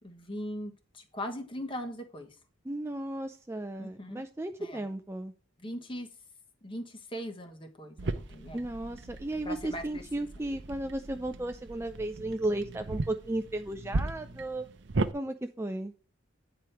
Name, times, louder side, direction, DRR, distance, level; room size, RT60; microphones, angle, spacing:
voice 1, 0.0-2.4 3.8-4.2 4.6-4.8 5.6-6.1 6.6-8.6 9.4-10.2, equal, 25° left, 5 dB, 1.2 m, -40 dB
voice 2, 2.7-5.3 8.5-14.7 15.1-15.9, right 1 dB, 15° right, 7 dB, 0.4 m, -35 dB
sound 1, 8.0-15.1, right 2 dB, 60° right, 0.7 m, -37 dB
9.5 x 4.9 x 4.5 m, 0.39 s
head